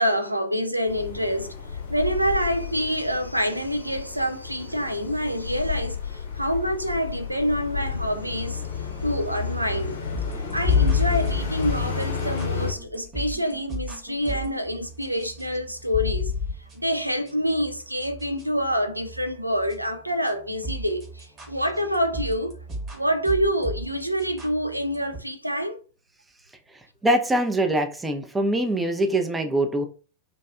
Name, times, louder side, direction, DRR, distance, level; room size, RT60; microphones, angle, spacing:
voice 1, 0.0-1.5 1.9-8.6 9.0-10.0 10.5-16.3 16.8-22.5 22.9-25.8, equal, 85° right, 0.3 m, -26 dB
sound 1, 0.9-12.7, left 6 dB, 65° left, 0.6 m, -32 dB
sound 2, 10.1-25.2, right 2 dB, 25° right, 0.9 m, -38 dB
sound 3, 10.7-13.4 13.9-14.0 15.9-16.5, left 5 dB, 15° left, 0.9 m, -26 dB
voice 2, 27.0-29.9, right 1 dB, 10° right, 0.4 m, -23 dB
2.6 x 2.3 x 2.2 m
figure-of-eight pair, 90°, 0 cm